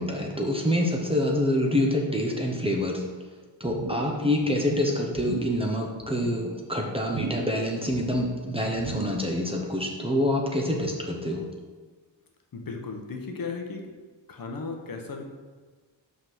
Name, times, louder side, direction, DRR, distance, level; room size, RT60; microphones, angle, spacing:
voice 1, 0.0-3.0 3.6-11.4, left 1 dB, 15° right, -1 dB, 0.8 m, -26 dB
sound 1, 3.7-4.2 4.4-4.8 5.1-5.6 6.0-6.5 7.1-7.6 7.9-8.4 8.8-9.3 9.7-9.8, right 5 dB, 45° right, 0.6 m, -36 dB
voice 2, 12.5-13.9 14.3-15.2, left 4 dB, 50° left, 2 dB, 0.9 m, -35 dB
5.6 x 3.8 x 6.0 m, 1.4 s
wide cardioid pair, 145°, 44 cm